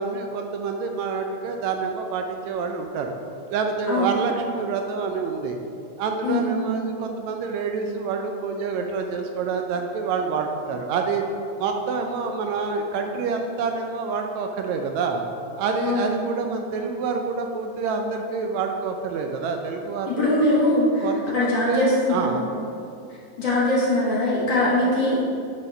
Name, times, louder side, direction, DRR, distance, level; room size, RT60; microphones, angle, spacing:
voice 1, 0.0-3.1 3.5-5.6 6.0-11.2 11.6-15.2 15.6-20.3 21.0-22.4, right 4 dB, 80° right, 4 dB, 1.8 m, -27 dB
voice 2, 3.9-4.2 6.2-6.7 15.8-16.2 20.1-21.1 21.3-22.5 23.4-25.2, left 1 dB, 45° left, -8 dB, 1.8 m, -22 dB
9.6 x 4.1 x 5.5 m, 2.6 s
omnidirectional pair, 3.4 m